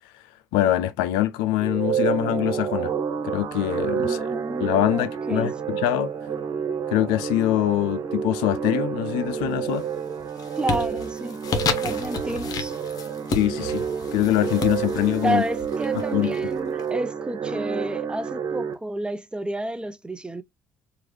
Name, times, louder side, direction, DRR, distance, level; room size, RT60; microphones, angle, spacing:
voice 1, 0.5-2.9 3.2-4.2 4.6-6.1 6.9-9.9 13.3-13.8 14.1-15.4 16.1-16.3, left 13 dB, 75° left, 0.4 m, -24 dB
sound 1, 1.6-18.7, right 7 dB, 50° right, 0.7 m, -29 dB
voice 2, 4.0-5.5 10.6-11.4 11.8-12.8 15.2-20.4, right 1 dB, 10° right, 0.4 m, -30 dB
sound 2, 9.3-9.8 10.2-16.8, left 5 dB, 55° left, 0.7 m, -32 dB
3.0 x 2.4 x 2.9 m
hypercardioid pair, 65°, 8 cm